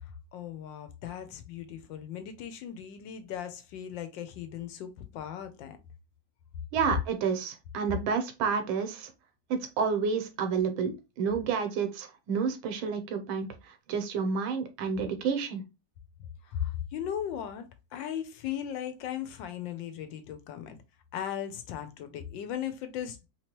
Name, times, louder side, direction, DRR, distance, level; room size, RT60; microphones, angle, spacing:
voice 1, 0.0-5.8 16.4-20.8 21.1-23.3, left 9 dB, 75° left, 1.3 m, -37 dB
voice 2, 6.7-9.1 9.5-15.6, right 6 dB, 90° right, 1.6 m, -30 dB
3.5 x 3.0 x 2.9 m
omnidirectional pair, 2.1 m